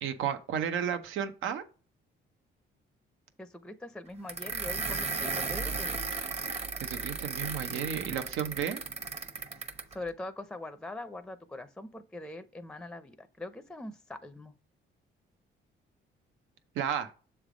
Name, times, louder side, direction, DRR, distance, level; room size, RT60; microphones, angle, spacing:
voice 1, 0.0-1.6 6.8-8.8 16.7-17.1, right 8 dB, 85° right, 0.8 m, -33 dB
voice 2, 3.4-6.1 9.9-14.5, left 2 dB, 5° left, 0.5 m, -42 dB
sound 1, 4.3-9.9, right 4 dB, 30° right, 0.8 m, -35 dB
7.0 x 3.4 x 5.0 m
cardioid pair, 90°, 20 cm